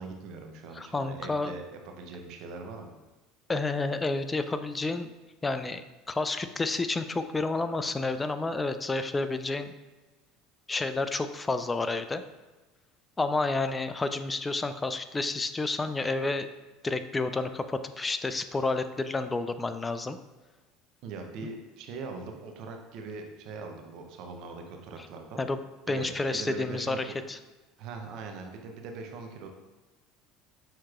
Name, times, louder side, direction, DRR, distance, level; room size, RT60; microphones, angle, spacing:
voice 1, 0.0-2.9 21.0-25.5 25.9-27.1 27.8-29.5, right 4 dB, 60° right, 3 dB, 0.6 m, -41 dB
voice 2, 0.7-1.5 3.5-5.1 5.4-5.8 6.1-9.7 10.7-12.2 13.2-16.5 16.8-20.2 25.4-25.6 25.9-27.4, left 3 dB, 20° left, 10 dB, 0.3 m, -30 dB
6.4 x 2.9 x 2.4 m, 1.2 s
hypercardioid pair, 85°, 0 cm